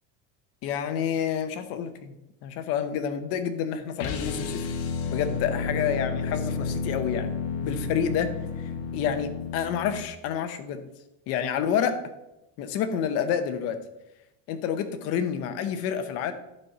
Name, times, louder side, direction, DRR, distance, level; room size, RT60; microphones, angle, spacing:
voice 1, 0.6-2.2 2.4-4.7 5.1-7.3 7.6-10.9 11.3-12.0 12.6-13.8 14.5-16.3, left 8 dB, 40° left, 10 dB, 0.7 m, -29 dB
sound 1, 4.0-10.1, left 5 dB, 60° left, 1.1 m, -31 dB
11.0 x 4.3 x 5.4 m, 0.93 s
cardioid pair, 180°, 37 cm